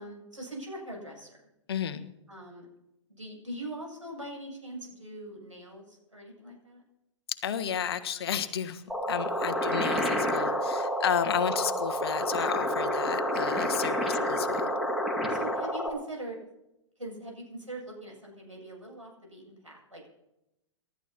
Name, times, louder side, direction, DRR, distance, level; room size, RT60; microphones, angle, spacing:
voice 1, 0.0-1.4 2.3-2.7 3.2-6.8 14.0-14.2 15.3-16.4 17.0-20.1, right 1 dB, 85° right, -2 dB, 7.7 m, -42 dB
voice 2, 1.7-2.0 7.4-8.8 9.1-14.7, left 8 dB, 55° left, 10 dB, 1.3 m, -32 dB
sound 1, 8.9-15.9, equal, ahead, 2.0 m, -29 dB
29.0 x 13.0 x 3.0 m, 0.89 s
figure-of-eight pair, 110°, 16 cm